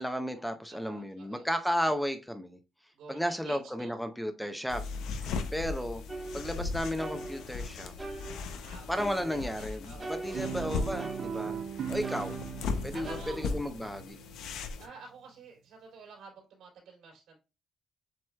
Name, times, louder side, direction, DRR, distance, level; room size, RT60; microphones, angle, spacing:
voice 1, 0.0-2.6 3.1-4.9 5.2-6.0 6.3-7.9 8.9-11.6 11.9-12.3 12.8-14.2, equal, ahead, 0.7 m, -33 dB
voice 2, 0.7-1.5 2.9-3.9 8.6-8.9 9.6-10.7 12.9-13.4 14.8-17.4, right 4 dB, 85° right, 3.0 m, -49 dB
sound 1, 4.7-14.9, left 4 dB, 85° left, 0.7 m, -38 dB
sound 2, 6.1-7.7 8.0-9.7 10.0-11.7 12.0-14.1, right 2 dB, 20° right, 1.4 m, -43 dB
Guitar, 10.3-14.7, right 9 dB, 60° right, 0.4 m, -39 dB
7.6 x 3.0 x 2.3 m
cardioid pair, 90°, 0 cm